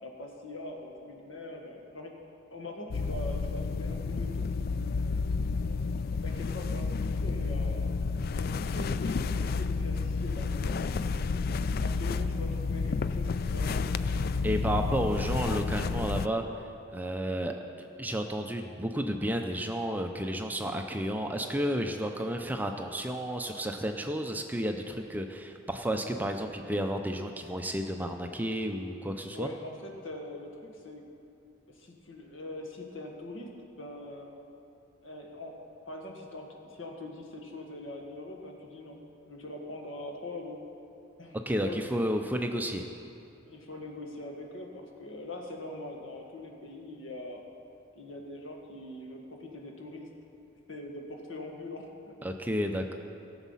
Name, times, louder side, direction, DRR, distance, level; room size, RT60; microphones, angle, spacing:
voice 1, 0.0-2.1 2.5-4.5 5.6-7.9 8.3-10.9 11.8-13.8 29.3-31.0 31.7-33.5 33.8-34.3 35.0-35.5 35.9-36.4 36.7-39.0 39.3-40.6 41.2-42.0 43.5-47.4 47.9-50.1 50.7-52.1, left 2 dB, 75° left, 1 dB, 1.7 m, -42 dB
sound 1, 2.9-16.3, left 4 dB, 50° left, 0.3 m, -30 dB
voice 2, 14.4-16.4 16.9-29.5 41.5-42.9 52.2-52.9, equal, 10° right, 4 dB, 0.5 m, -32 dB
17.0 x 7.2 x 5.6 m, 2.7 s
head